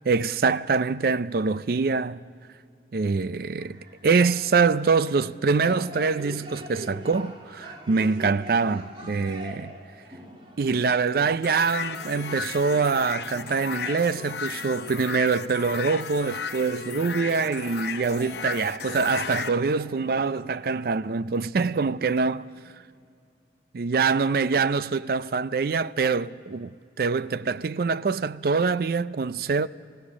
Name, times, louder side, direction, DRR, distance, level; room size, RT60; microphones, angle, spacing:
voice 1, 0.1-2.2 2.9-3.8 4.0-9.7 10.6-22.5 23.7-29.7, right 4 dB, 55° right, 0.4 m, -24 dB
sound 1, 3.6-20.5, equal, 30° right, 2.7 m, -44 dB
sound 2, 11.4-19.5, left 6 dB, 70° left, 0.7 m, -35 dB
28.0 x 16.5 x 6.2 m
head